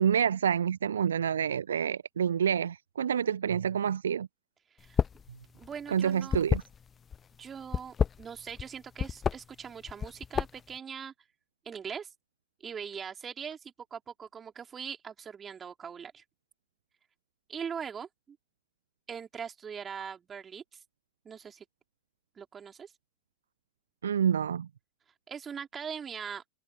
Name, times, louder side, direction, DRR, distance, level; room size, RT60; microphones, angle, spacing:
voice 1, 0.0-4.3 5.9-6.6 24.0-24.7, right 8 dB, 75° right, 0.7 m, -28 dB
sound 1, 4.8-5.3 5.5-7.2 7.6-8.7 9.0-9.4 9.9-10.7, left 7 dB, 25° left, 0.7 m, -29 dB
voice 2, 5.6-6.4 7.4-11.1 11.6-12.1 12.6-16.2 17.5-18.4 19.1-20.8 21.2-21.7 22.4-22.9 25.3-26.4, right 7 dB, 25° right, 4.0 m, -41 dB
figure-of-eight pair, 75°, 0 cm